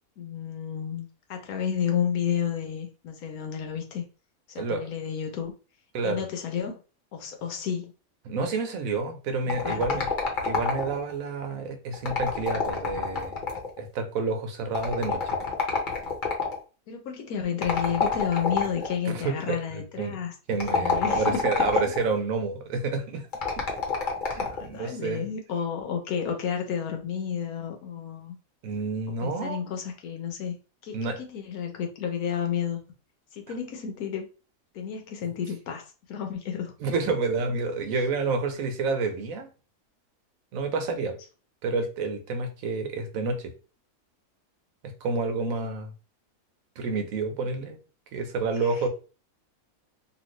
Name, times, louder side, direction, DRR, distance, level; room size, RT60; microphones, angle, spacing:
voice 1, 0.2-4.0 4.5-5.5 6.0-6.8 7.1-7.9 9.5-9.8 16.9-20.3 20.7-21.7 24.4-28.4 29.2-30.6 30.8-32.8 33.3-34.3 34.7-36.7 37.9-38.0, left 8 dB, 85° left, 4 dB, 1.3 m, -31 dB
voice 2, 8.3-10.1 10.3-13.4 13.8-15.2 19.1-20.2 20.5-23.3 24.3-25.3 28.6-29.6 30.9-31.2 36.8-39.5 40.5-41.2 41.6-43.5 45.0-45.9 46.8-47.8 48.1-48.9, right 4 dB, 75° right, 6 dB, 1.1 m, -29 dB
sound 1, 9.5-11.1 11.9-13.8 14.7-16.6 17.6-18.9 20.5-22.1 23.3-24.7, left 5 dB, 40° left, 0.8 m, -27 dB
3.0 x 2.6 x 3.1 m, 0.34 s
omnidirectional pair, 1.5 m